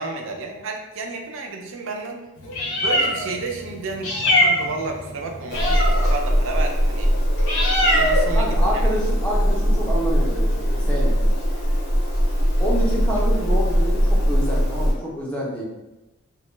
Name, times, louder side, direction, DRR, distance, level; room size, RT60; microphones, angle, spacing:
voice 1, 0.0-2.2 2.8-7.1 7.7-8.9, right 3 dB, 60° right, 2 dB, 0.4 m, -31 dB
Meow, 2.4-14.9, equal, 65° left, 0.6 m, -20 dB
voice 2, 8.3-11.2 12.6-15.6, equal, 5° left, -5 dB, 0.4 m, -27 dB
2.2 x 2.0 x 3.1 m, 1.0 s
head